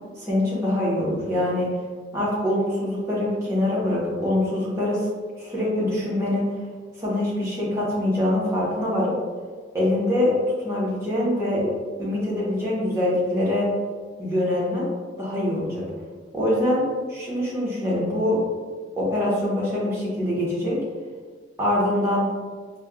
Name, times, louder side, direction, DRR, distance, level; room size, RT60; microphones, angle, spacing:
voice 1, 0.2-1.7 2.1-5.1 5.4-6.5 7.0-9.1 9.7-10.3 10.6-11.7 12.0-13.7 14.2-14.9 15.2-15.8 16.3-16.8 17.1-18.4 19.0-20.8 21.6-22.3, left 1 dB, 15° right, -7 dB, 0.9 m, -24 dB
5.1 x 2.2 x 2.3 m, 1.5 s
head